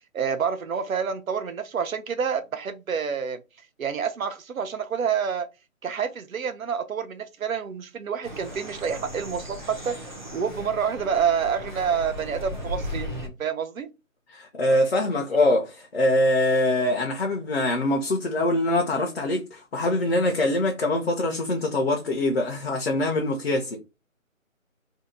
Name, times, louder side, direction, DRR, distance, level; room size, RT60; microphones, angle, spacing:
voice 1, 0.1-3.4 3.8-5.5 5.8-10.0 10.3-13.9, right 7 dB, 75° right, 0.7 m, -28 dB
sound 1, 8.2-13.3, left 1 dB, 35° right, 0.5 m, -36 dB
voice 2, 14.3-23.8, left 1 dB, 50° left, 0.6 m, -23 dB
2.7 x 2.2 x 3.8 m
figure-of-eight pair, 170°, 41 cm